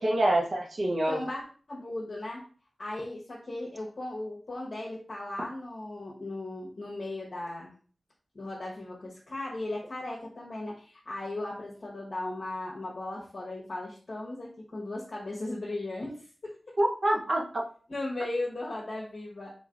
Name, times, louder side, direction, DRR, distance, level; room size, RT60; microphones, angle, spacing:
voice 1, 0.0-1.2 16.8-17.6, right 1 dB, 60° right, -1 dB, 0.8 m, -26 dB
voice 2, 1.1-2.4 2.8-7.7 8.3-16.5 17.9-19.5, left 2 dB, 55° left, -5 dB, 0.9 m, -37 dB
3.6 x 3.2 x 2.5 m, 0.42 s
wide cardioid pair, 60°, 0 cm